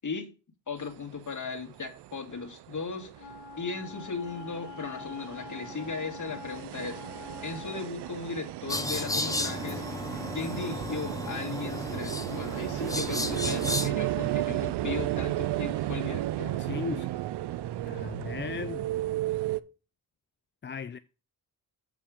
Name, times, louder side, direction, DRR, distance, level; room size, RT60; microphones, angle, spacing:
voice 1, 0.7-7.0 7.4-9.8 10.3-16.6, left 4 dB, 50° left, 1.9 m, -37 dB
sound 1, 0.9-1.0 1.3-19.6, right 14 dB, 85° right, 0.5 m, -34 dB
Wind instrument woodwind instrument, 3.2-8.0, left 7 dB, 90° left, 1.3 m, -45 dB
sound 2, 8.7-13.9, left 2 dB, 10° left, 1.0 m, -33 dB
voice 2, 16.6-17.1 17.8-18.9 20.6-21.0, left 7 dB, 30° left, 0.4 m, -36 dB
7.5 x 4.8 x 5.0 m
cardioid pair, 60°, 39 cm